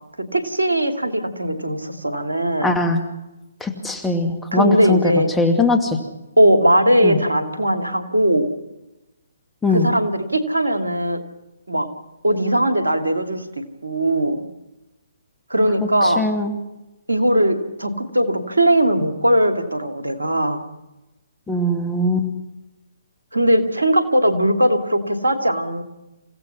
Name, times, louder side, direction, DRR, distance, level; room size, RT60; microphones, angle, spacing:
voice 1, 0.3-2.8 4.5-5.3 6.4-8.5 9.7-11.2 11.7-11.9 12.2-13.4 13.8-14.4 15.5-16.3 17.1-20.6 23.3-25.8, right 1 dB, 90° right, 6 dB, 2.5 m, -19 dB
voice 2, 2.6-3.0 3.6-5.0 5.4-6.0 7.0-7.2 9.6-9.9 16.2-16.5 21.5-22.3, left 2 dB, 10° left, 5 dB, 2.3 m, -20 dB
28.5 x 16.5 x 5.7 m, 0.99 s
figure-of-eight pair, 135°, 0 cm